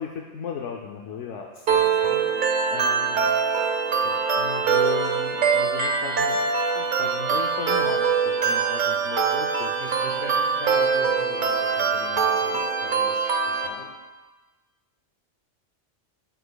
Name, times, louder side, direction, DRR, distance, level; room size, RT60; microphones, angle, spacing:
voice 1, 0.0-1.8 2.7-3.3 4.0-6.4 6.7-8.1 8.4-9.7, left 7 dB, 75° left, 0 dB, 0.9 m, -35 dB
voice 2, 1.6-2.2 9.8-13.8, left 2 dB, 45° left, -1 dB, 1.4 m, -40 dB
sound 1, 1.7-13.7, right 5 dB, 50° right, 0.7 m, -23 dB
11.5 x 6.5 x 2.3 m, 1.3 s
omnidirectional pair, 1.3 m